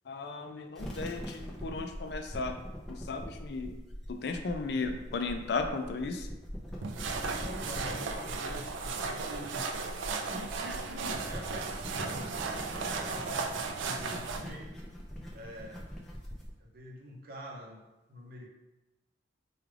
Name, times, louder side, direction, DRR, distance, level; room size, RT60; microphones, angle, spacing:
voice 1, 0.1-2.6 2.9-3.8 4.1-6.3, left 3 dB, 60° left, 6 dB, 0.4 m, -35 dB
sound 1, 0.8-16.5, equal, ahead, 0.5 m, -43 dB
sound 2, 6.8-14.4, right 4 dB, 85° right, 0.4 m, -36 dB
voice 2, 7.3-9.9 10.3-14.7 15.3-15.9 16.6-17.8 18.1-18.5, equal, 50° right, -1 dB, 0.7 m, -45 dB
4.8 x 2.3 x 3.2 m, 1.0 s
head